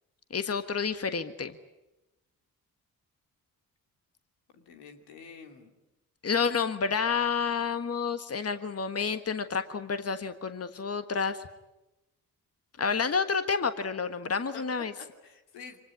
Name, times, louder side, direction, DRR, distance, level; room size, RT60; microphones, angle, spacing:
voice 1, 0.3-1.5 6.2-11.4 12.8-14.9, left 5 dB, 35° left, 10 dB, 1.6 m, -29 dB
voice 2, 4.5-5.7 14.5-14.6 15.0-15.8, left 6 dB, 85° left, 4 dB, 2.8 m, -48 dB
25.0 x 19.5 x 9.7 m, 1.0 s
supercardioid pair, 45°, 39 cm